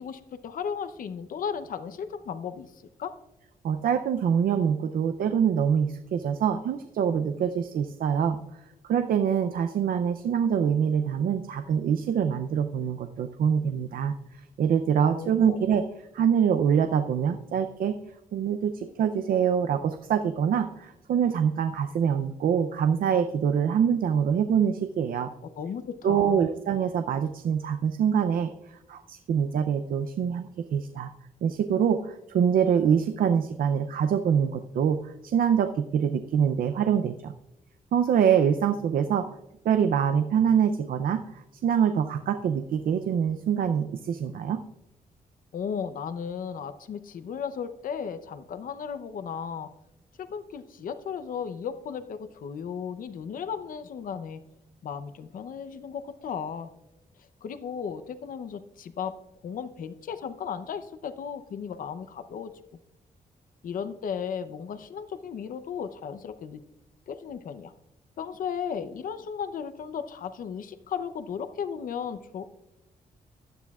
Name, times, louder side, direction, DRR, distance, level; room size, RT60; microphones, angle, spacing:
voice 1, 0.0-3.1 15.1-15.6 25.4-26.5 45.5-49.7 50.2-54.4 54.8-56.7 57.4-59.1 59.4-62.5 63.6-66.6 67.1-67.7 68.2-72.5, left 7 dB, 65° left, 11 dB, 0.7 m, -35 dB
voice 2, 3.6-8.4 8.8-14.2 14.6-15.8 16.1-18.0 18.3-25.3 26.0-31.1 31.4-37.3 37.9-39.3 39.6-41.2 41.5-44.6, right 8 dB, 75° right, 8 dB, 0.5 m, -25 dB
16.0 x 11.5 x 2.4 m, 0.93 s
wide cardioid pair, 140°, 15 cm